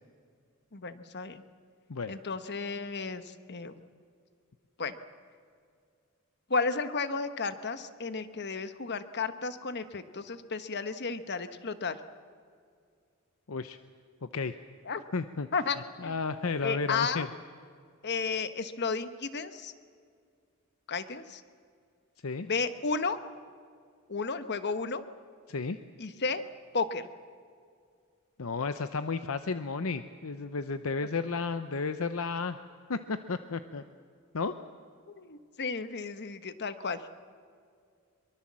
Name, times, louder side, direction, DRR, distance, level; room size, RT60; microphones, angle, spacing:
voice 1, 0.7-1.4 2.1-3.2 3.5-3.7 4.8-4.9 6.5-12.0 14.9-15.0 15.5-15.8 16.0-16.1 16.6-17.3 18.0-19.7 20.9-21.4 22.4-23.2 24.1-25.0 26.0-26.4 26.7-27.1 35.1-37.0, left 4 dB, 50° left, 11 dB, 1.2 m, -33 dB
voice 2, 14.2-14.5 15.1-15.5 15.7-17.3 22.2-22.5 25.5-25.8 28.4-32.6 32.9-33.8 34.3-34.5, left 4 dB, 70° left, 10 dB, 0.7 m, -33 dB
23.0 x 23.0 x 7.5 m, 2.2 s
head